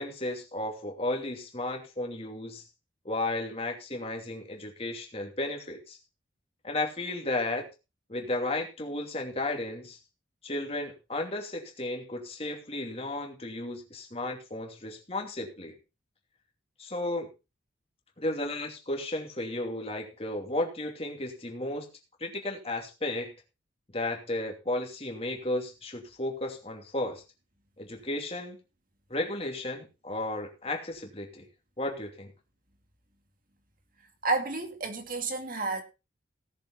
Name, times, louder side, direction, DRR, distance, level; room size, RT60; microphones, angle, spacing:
voice 1, 0.0-2.6 3.0-6.0 6.6-7.7 8.1-10.0 10.4-15.8 16.8-17.3 18.2-21.9 22.2-23.3 23.9-27.2 27.8-28.6 29.1-31.5 31.8-32.3, left 2 dB, 30° left, 2.7 m, -34 dB
voice 2, 34.2-35.8, right 3 dB, 45° right, 2.3 m, -30 dB
17.5 x 7.2 x 4.2 m
head